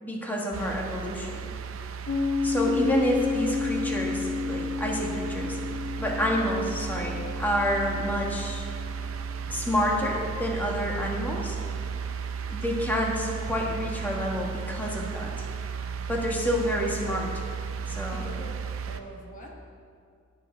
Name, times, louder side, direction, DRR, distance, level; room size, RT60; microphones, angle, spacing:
voice 1, 0.0-1.5 2.4-5.6 6.0-8.6 9.5-11.6 12.5-15.3 16.1-17.3 17.9-18.3, equal, 10° left, -2 dB, 1.4 m, -28 dB
sound 1, 0.5-19.0, right 6 dB, 75° right, 0.6 m, -35 dB
Piano, 2.1-9.3, left 4 dB, 85° left, 1.8 m, -31 dB
voice 2, 17.8-19.6, equal, 40° left, 0 dB, 1.2 m, -45 dB
9.5 x 6.5 x 8.8 m, 2.3 s
head